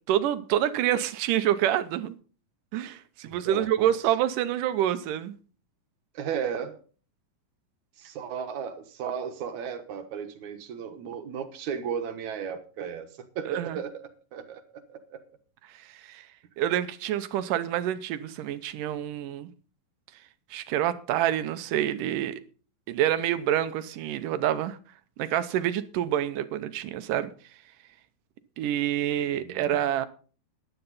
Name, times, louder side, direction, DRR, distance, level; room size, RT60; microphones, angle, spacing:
voice 1, 0.1-2.1 2.7-5.4 13.5-13.8 15.9-16.3 16.6-19.5 20.5-22.4 22.9-24.8 25.2-27.3 28.6-30.1, right 11 dB, 85° right, 2.4 m, -27 dB
voice 2, 3.2-3.9 6.1-6.8 8.0-13.1 13.4-15.2 29.3-29.9, right 7 dB, 65° right, 2.6 m, -35 dB
14.5 x 10.5 x 4.1 m
omnidirectional pair, 3.8 m